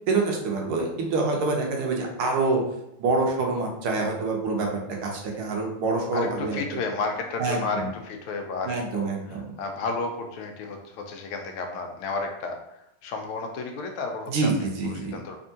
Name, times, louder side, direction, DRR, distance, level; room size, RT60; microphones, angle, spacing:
voice 1, 0.1-2.6 3.0-4.7 5.0-6.8 7.4-7.9 8.6-9.5 14.3-15.2, right 3 dB, 80° right, 0 dB, 1.7 m, -26 dB
voice 2, 6.1-12.6 13.0-15.4, left 3 dB, 80° left, 4 dB, 1.5 m, -32 dB
3.6 x 3.4 x 2.7 m, 0.81 s
omnidirectional pair, 2.3 m